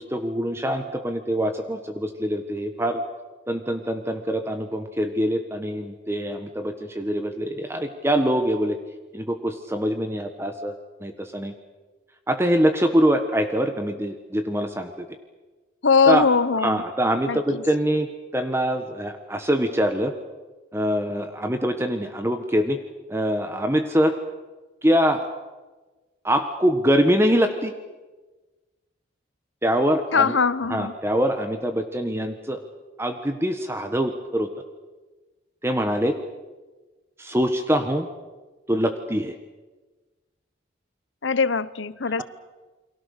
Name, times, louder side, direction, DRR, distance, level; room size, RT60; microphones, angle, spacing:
voice 1, 0.0-3.0 3.5-8.8 9.1-10.7 11.0-11.5 12.3-15.0 16.1-16.3 16.6-20.1 20.7-22.8 23.1-24.2 24.8-25.2 26.2-27.7 29.6-30.4 30.7-32.6 33.0-34.5 35.6-36.1 37.2-38.1 38.7-39.3, equal, 15° right, 1.3 m, -24 dB
voice 2, 15.8-16.8 17.3-17.6 30.1-30.9 41.2-42.2, left 5 dB, 80° left, 0.9 m, -21 dB
29.0 x 23.0 x 6.6 m
head